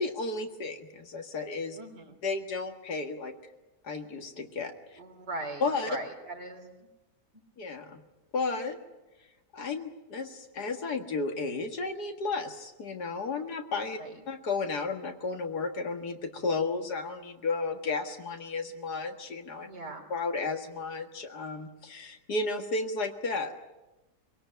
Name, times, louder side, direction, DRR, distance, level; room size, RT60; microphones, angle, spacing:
voice 1, 0.0-1.8 2.2-3.3 3.8-5.0 5.6-5.9 7.6-8.0 8.3-8.8 9.5-14.0 14.3-19.7 20.1-23.6, left 3 dB, 70° left, 5 dB, 2.3 m, -33 dB
voice 2, 1.8-2.2 5.0-6.7 14.0-14.2 19.6-20.0, right 2 dB, 90° right, 4 dB, 3.8 m, -40 dB
23.5 x 17.5 x 9.3 m, 1.1 s
omnidirectional pair, 1.8 m